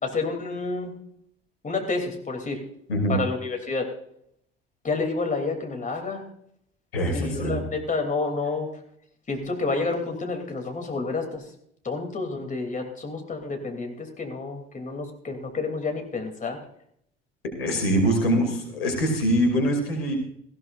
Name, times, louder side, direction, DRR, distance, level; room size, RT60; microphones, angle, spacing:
voice 1, 0.0-0.9 1.6-2.6 3.1-3.9 4.8-6.2 7.1-8.7 9.3-11.4 11.8-16.6, left 3 dB, 25° left, 3 dB, 3.0 m, -29 dB
voice 2, 6.9-7.6 17.6-20.2, equal, 80° left, 2 dB, 2.8 m, -23 dB
18.0 x 15.5 x 2.5 m, 0.69 s
figure-of-eight pair, 60°, 30 cm